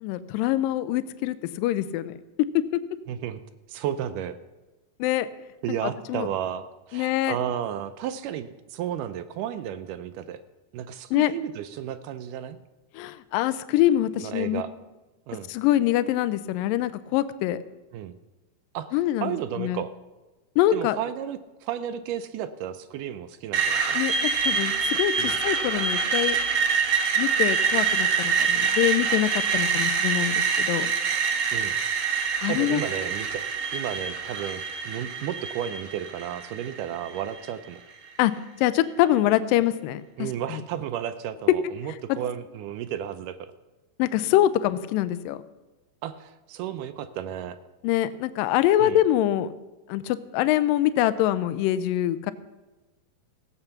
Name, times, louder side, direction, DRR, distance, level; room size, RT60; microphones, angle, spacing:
voice 1, 0.0-2.5 5.0-5.3 6.1-6.3 6.9-7.4 11.1-11.3 12.9-14.6 15.5-17.6 18.9-19.8 20.6-21.0 23.9-26.4 27.2-30.9 32.4-32.8 38.2-40.0 40.5-40.6 42.1-42.2 44.0-45.4 47.8-49.5 49.9-52.3, left 13 dB, 85° left, 14 dB, 2.2 m, -24 dB
voice 2, 3.1-3.4 3.7-4.4 5.6-10.4 10.7-12.6 14.2-14.7 15.3-15.5 17.9-18.1 18.7-19.9 20.7-24.0 25.2-25.4 31.5-31.8 32.5-33.4 33.7-37.8 40.2-43.5 46.0-47.6 48.8-49.0, right 10 dB, 80° right, 11 dB, 2.0 m, -33 dB
Screech, 23.5-37.5, right 5 dB, 60° right, 1.4 m, -25 dB
16.5 x 8.0 x 5.7 m, 1.1 s
omnidirectional pair, 4.0 m